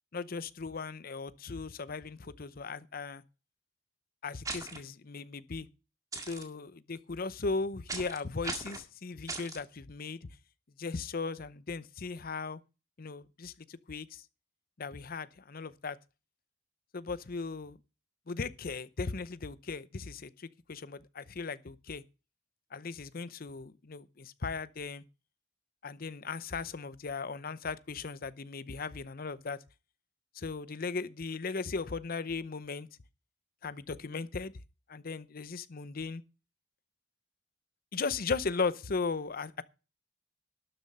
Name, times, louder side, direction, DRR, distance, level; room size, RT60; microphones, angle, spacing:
voice 1, 0.1-3.2 4.2-5.7 6.3-10.2 10.8-12.6 13.0-14.2 14.8-16.0 16.9-17.8 18.3-22.0 22.7-25.0 25.8-29.6 30.3-32.9 33.6-34.5 34.9-36.2 37.9-39.6, left 4 dB, 50° left, 0.7 m, -37 dB
sound 1, 4.4-4.8 6.1-6.4 7.9-8.2 8.4-8.8 9.3-9.6, right 3 dB, 20° right, 1.9 m, -38 dB
12.5 x 7.3 x 5.5 m
head